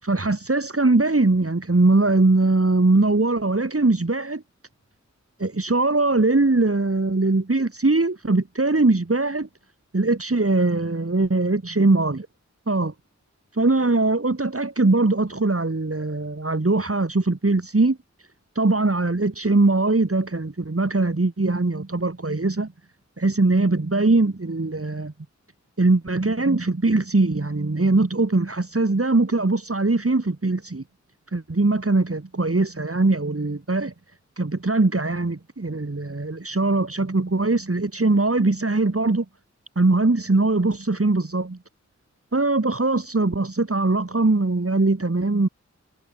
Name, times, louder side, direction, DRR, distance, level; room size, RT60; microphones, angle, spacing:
voice 1, 0.0-4.4 5.4-9.5 9.9-12.2 12.7-12.9 13.6-18.0 18.6-22.7 23.2-25.1 25.8-30.8 31.3-33.9 34.4-39.3 39.8-41.6 42.3-45.5, right 2 dB, 50° right, 5.4 m, -21 dB
wide cardioid pair, 60°, 29 cm